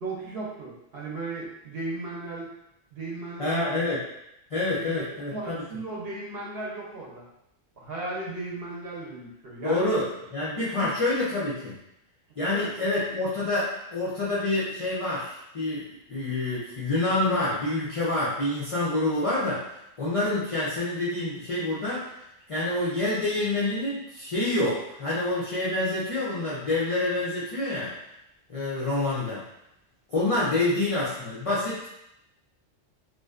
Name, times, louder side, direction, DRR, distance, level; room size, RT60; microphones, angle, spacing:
voice 1, 0.0-2.5 2.9-3.9 4.7-7.3 7.8-9.9 10.8-10.9 12.5-12.7 30.5-30.7, right 3 dB, 60° right, -5 dB, 0.8 m, -36 dB
voice 2, 3.4-4.0 4.5-5.5 9.6-10.1 10.3-11.8 12.4-15.8 16.1-19.6 20.0-22.1 22.5-27.9 28.5-29.4 30.1-31.9, left 2 dB, 60° left, -8 dB, 0.3 m, -27 dB
2.5 x 2.2 x 2.3 m, 0.83 s
omnidirectional pair, 1.3 m